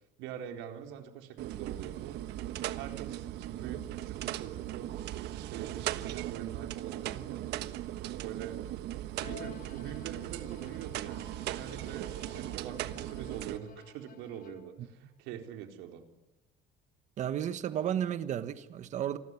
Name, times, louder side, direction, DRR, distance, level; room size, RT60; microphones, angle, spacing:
voice 1, 0.2-2.2 2.8-5.0 5.3-7.6 8.0-8.6 9.2-16.0, right 9 dB, 80° right, 4.1 m, -44 dB
sound 1, 1.4-13.6, right 14 dB, 65° right, 1.3 m, -38 dB
Bowed string instrument, 9.2-14.9, left 8 dB, 45° left, 2.2 m, -54 dB
voice 2, 17.2-19.2, right 10 dB, 40° right, 1.4 m, -33 dB
28.0 x 20.5 x 9.7 m
cardioid pair, 170°, 19 cm